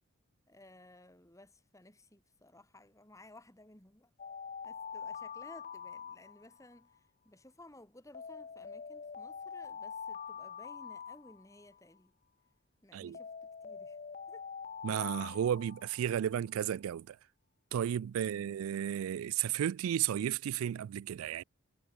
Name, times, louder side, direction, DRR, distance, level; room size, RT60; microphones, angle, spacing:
voice 1, 0.5-4.1 4.6-12.1 12.8-14.0 14.3-14.5 15.2-15.4 18.1-18.7, left 1 dB, 15° left, 3.1 m, -57 dB
Alarm, 4.2-6.8 8.1-11.8 13.1-16.4, left 6 dB, 35° left, 0.5 m, -45 dB
voice 2, 14.8-17.2 17.7-21.4, right 10 dB, 85° right, 0.3 m, -33 dB
head